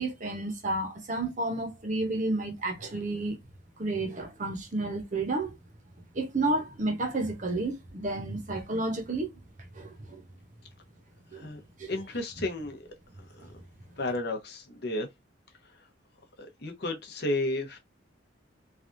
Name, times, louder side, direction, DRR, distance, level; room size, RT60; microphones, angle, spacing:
voice 1, 0.0-3.4 3.8-5.6 6.1-9.3 9.7-10.2 11.3-11.5 11.8-11.9, right 2 dB, 40° right, 0.8 m, -31 dB
voice 2, 11.9-12.9 13.4-13.5 14.0-15.1 15.7-15.8 16.4-17.8, left 2 dB, 55° left, 0.8 m, -33 dB
3.3 x 2.3 x 2.5 m
head